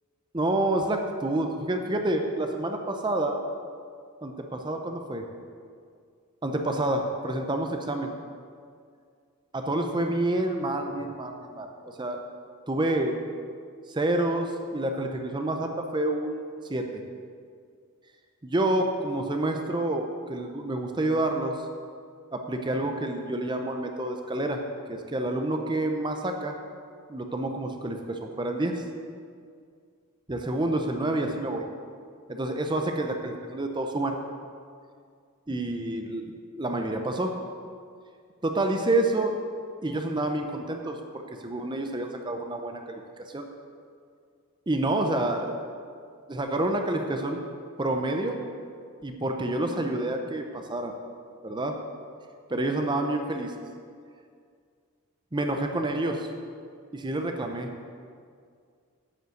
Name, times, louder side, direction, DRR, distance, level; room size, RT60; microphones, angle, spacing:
voice 1, 0.3-3.4 4.2-5.2 6.4-8.1 9.5-12.2 12.7-13.1 13.9-17.0 18.4-21.6 22.3-24.6 24.9-26.6 27.1-28.8 30.3-31.6 32.3-34.2 35.5-37.3 38.4-39.3 39.8-43.0 43.3-43.5 44.7-45.6 46.3-47.4 47.8-48.4 49.0-50.9 51.4-51.8 52.5-53.5 55.3-56.3 56.9-57.7, right 1 dB, 20° right, 4 dB, 0.6 m, -28 dB
9.7 x 5.5 x 7.7 m, 2.2 s
head